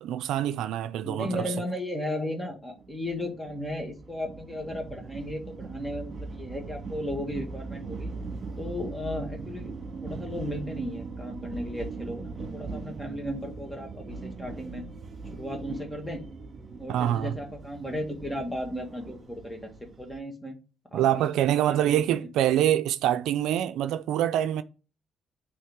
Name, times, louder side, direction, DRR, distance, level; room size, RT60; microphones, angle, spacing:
voice 1, 0.0-1.5 16.9-17.4 20.9-24.6, right 11 dB, 90° right, 0.4 m, -25 dB
voice 2, 1.0-8.1 8.6-9.7 10.0-14.8 15.3-16.2 16.8-19.7 20.0-20.6 20.9-21.3 21.7-22.3, left 1 dB, 10° left, 1.8 m, -35 dB
sound 1, 2.8-20.2, right 4 dB, 45° right, 1.6 m, -40 dB
8.5 x 3.3 x 3.6 m
cardioid pair, 90°, 0 cm